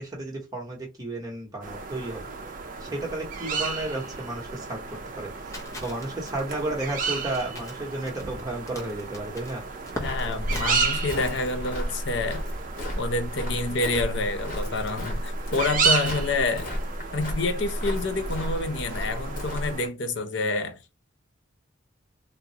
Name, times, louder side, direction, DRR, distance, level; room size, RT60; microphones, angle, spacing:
voice 1, 0.0-2.2 2.8-9.6, right 2 dB, 20° right, 1.0 m, -33 dB
sound 1, 1.6-19.9, right 5 dB, 40° right, 0.5 m, -33 dB
Crackle, 5.5-10.7, left 1 dB, 15° left, 0.7 m, -41 dB
voice 2, 10.0-12.4 13.0-16.7 17.1-20.8, left 3 dB, 60° left, 0.5 m, -28 dB
Walk footsteps, 10.0-19.8, equal, 40° left, 0.9 m, -33 dB
3.6 x 2.1 x 2.7 m
head